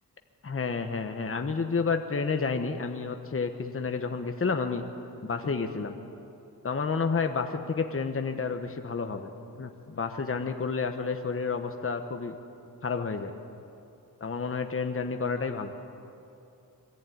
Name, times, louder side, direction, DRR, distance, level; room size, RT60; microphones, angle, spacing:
voice 1, 0.4-4.8 5.2-6.0 6.6-12.3 12.8-13.3 14.2-15.7, left 5 dB, 40° left, 6 dB, 1.2 m, -30 dB
21.5 x 14.0 x 9.3 m, 2.7 s
wide cardioid pair, 100°, 35 cm